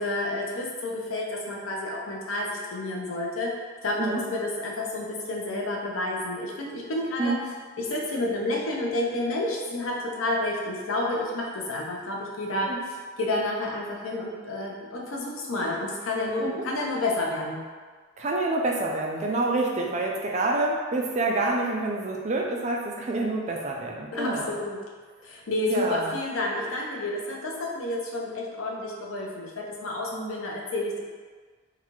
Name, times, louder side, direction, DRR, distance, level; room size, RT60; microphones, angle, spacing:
voice 1, 0.0-3.5 3.8-7.4 7.8-12.7 13.2-17.6 24.1-24.8 25.2-31.0, left 2 dB, 90° left, -2 dB, 0.7 m, -30 dB
voice 2, 18.2-24.6 25.7-26.1 30.1-30.4, right 2 dB, 35° right, -1 dB, 0.4 m, -27 dB
3.8 x 2.3 x 3.0 m, 1.5 s
head